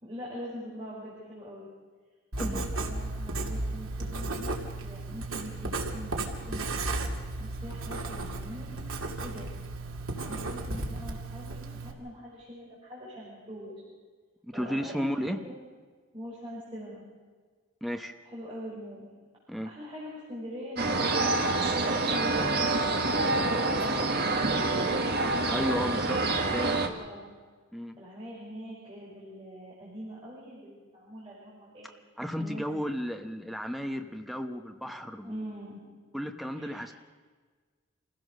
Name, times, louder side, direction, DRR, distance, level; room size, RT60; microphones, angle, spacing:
voice 1, 0.0-1.7 2.4-6.7 7.4-8.7 9.2-9.5 10.1-13.8 14.5-15.5 16.1-17.0 18.2-19.1 19.6-22.7 23.2-25.5 26.8-27.3 28.0-31.9 32.4-32.6 35.2-35.8 36.5-36.9, equal, 25° right, -7 dB, 5.8 m, -43 dB
Writing, 2.3-11.9, right 2 dB, 85° right, 2.3 m, -34 dB
voice 2, 14.4-15.4 17.8-18.1 19.5-19.7 25.5-26.2 26.5-26.8 27.7-27.9 32.2-35.4 36.1-36.9, equal, ahead, 5 dB, 0.9 m, -33 dB
sound 1, 20.8-26.9, right 2 dB, 50° right, 1.7 m, -27 dB
27.0 x 16.0 x 6.5 m, 1.5 s
head